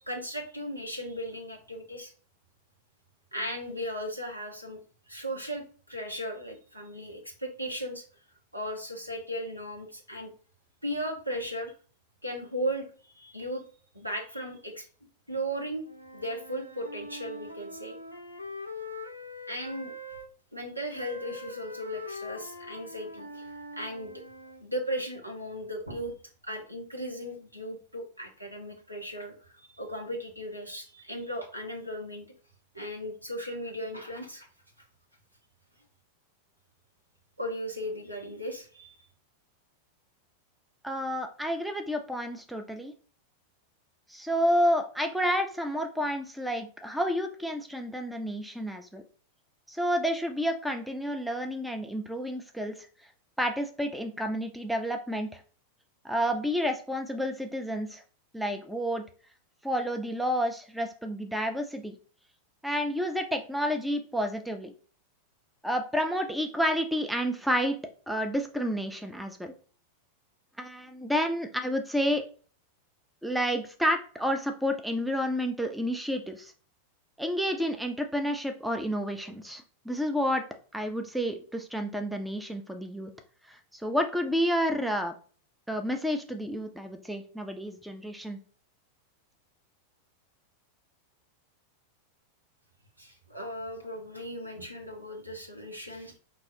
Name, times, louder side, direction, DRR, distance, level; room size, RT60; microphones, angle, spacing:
voice 1, 0.1-2.1 3.3-4.8 5.1-8.0 8.5-10.3 10.8-11.7 12.2-13.6 13.9-14.8 15.3-15.9 16.1-18.0 19.5-19.9 20.5-24.1 24.6-26.1 26.4-32.2 32.7-34.5 37.4-39.0 93.0-96.2, equal, 90° right, 1 dB, 1.2 m, -36 dB
Wind instrument woodwind instrument, 15.8-20.3 20.9-24.6, left 2 dB, 85° left, 0.6 m, -42 dB
voice 2, 40.8-42.9 44.1-49.0 49.7-52.8 53.4-55.4 56.0-58.0 58.3-59.0 59.6-62.0 62.6-64.7 65.6-67.8 68.1-69.5 70.6-72.2 73.2-76.5 77.2-80.5 80.7-83.1 83.5-85.1 85.7-88.4, equal, 5° right, 5 dB, 0.6 m, -30 dB
5.5 x 3.0 x 2.8 m, 0.40 s
figure-of-eight pair, 90°, 0 cm